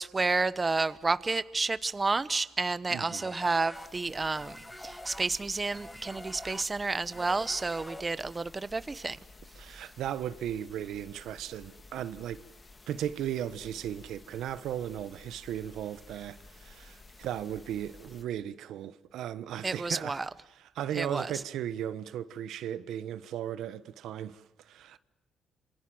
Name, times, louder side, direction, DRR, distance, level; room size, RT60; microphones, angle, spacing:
voice 1, 0.0-9.2 19.6-20.3 20.9-21.3, right 3 dB, 25° right, 1.1 m, -30 dB
voice 2, 2.9-3.3 9.6-12.4 12.9-20.2 20.7-25.0, right 10 dB, 80° right, 1.2 m, -36 dB
sound 1, 3.0-8.5, left 1 dB, 5° left, 2.1 m, -46 dB
sound 2, 3.7-18.2, left 3 dB, 30° left, 2.7 m, -53 dB
27.5 x 27.5 x 7.8 m
cardioid pair, 90°, 0 cm